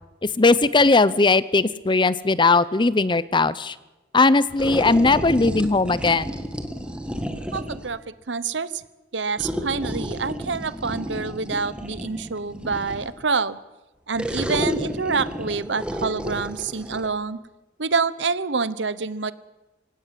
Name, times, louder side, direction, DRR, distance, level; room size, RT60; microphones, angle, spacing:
voice 1, 0.2-3.8 4.1-6.4, left 3 dB, 25° left, 17 dB, 0.7 m, -19 dB
sound 1, 4.6-8.0 9.4-13.2 14.2-17.1, equal, 5° right, 1.8 m, -31 dB
voice 2, 7.5-8.8 9.1-13.6 14.1-17.4 17.8-19.3, right 4 dB, 75° right, 16 dB, 1.0 m, -27 dB
26.0 x 17.0 x 7.7 m, 1.1 s
head